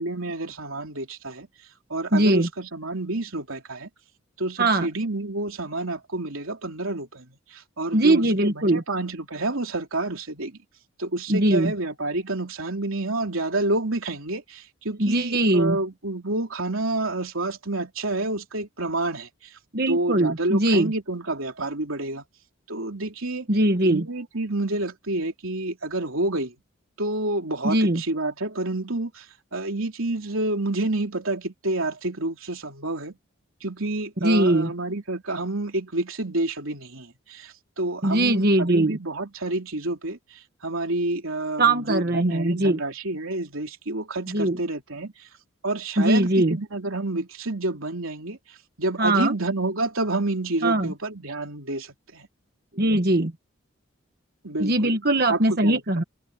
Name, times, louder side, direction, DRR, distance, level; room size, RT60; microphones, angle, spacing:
voice 1, 0.0-1.5 1.9-3.9 4.4-7.2 7.5-10.6 11.0-19.3 19.9-22.2 22.7-23.5 23.8-26.5 27.0-29.2 29.5-33.2 33.6-45.1 45.6-48.4 48.8-52.3 54.4-55.0 55.3-55.8, right 2 dB, 85° right, 3.2 m, -29 dB
voice 2, 2.1-2.5 4.6-4.9 7.9-8.8 11.3-11.7 15.0-15.8 19.7-20.9 23.5-24.0 27.6-28.0 34.2-34.7 38.0-39.0 41.6-42.8 44.3-44.6 46.0-46.6 49.0-49.3 50.6-50.9 52.8-53.3 54.6-56.0, right 1 dB, 50° right, 1.3 m, -21 dB
head